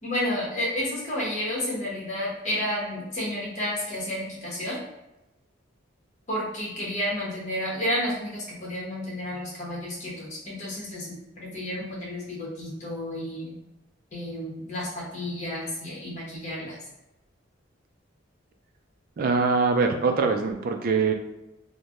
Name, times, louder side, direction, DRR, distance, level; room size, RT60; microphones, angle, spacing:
voice 1, 0.0-4.8 6.3-13.5 14.1-16.8, left 1 dB, 40° left, -5 dB, 1.0 m, -31 dB
voice 2, 19.2-21.1, right 4 dB, 50° right, 6 dB, 0.3 m, -23 dB
3.1 x 2.1 x 2.5 m, 0.94 s
head